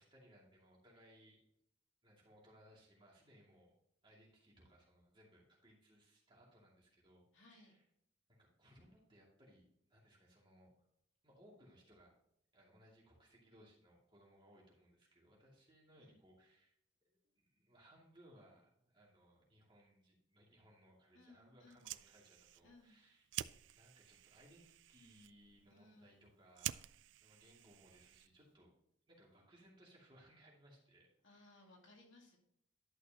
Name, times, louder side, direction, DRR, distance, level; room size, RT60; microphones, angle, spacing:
voice 1, 0.0-1.4 2.0-3.7 4.0-7.8 8.3-9.6 9.9-10.7 11.2-12.1 12.5-16.7 17.0-23.3 23.7-26.8 27.2-28.7 29.1-31.7, equal, 25° right, -4 dB, 2.5 m, -65 dB
voice 2, 7.3-7.8 16.0-16.2 21.1-21.9 22.6-23.0 25.7-26.2 31.2-32.4, left 2 dB, 75° left, -1 dB, 2.4 m, -63 dB
Fire, 21.6-28.5, right 13 dB, 65° right, 0.3 m, -50 dB
11.0 x 6.5 x 2.9 m, 0.74 s
head